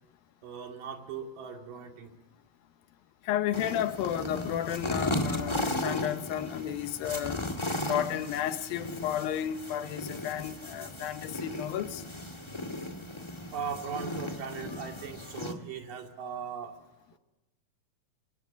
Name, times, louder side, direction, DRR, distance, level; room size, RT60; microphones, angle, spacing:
voice 1, 0.4-2.2 13.5-16.8, right 7 dB, 65° right, 3.9 m, -39 dB
voice 2, 3.2-7.4 7.9-12.0, left 11 dB, 80° left, 2.8 m, -32 dB
sound 1, 3.5-15.5, left 1 dB, 30° left, 0.5 m, -36 dB
28.0 x 24.0 x 7.0 m
omnidirectional pair, 4.2 m